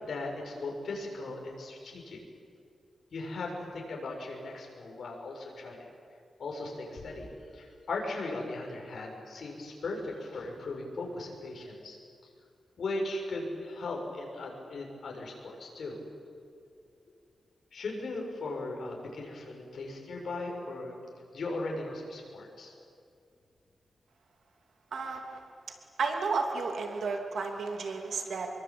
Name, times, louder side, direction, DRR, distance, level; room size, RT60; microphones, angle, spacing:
voice 1, 0.0-2.2 3.1-5.9 6.4-7.3 7.5-12.0 12.8-16.0 17.7-21.0 21.3-22.7, left 2 dB, 70° left, 1 dB, 6.7 m, -38 dB
voice 2, 24.9-25.4 26.0-28.5, right 4 dB, 75° right, 3 dB, 3.0 m, -32 dB
27.0 x 23.0 x 8.8 m, 2.3 s
wide cardioid pair, 120°, 0 cm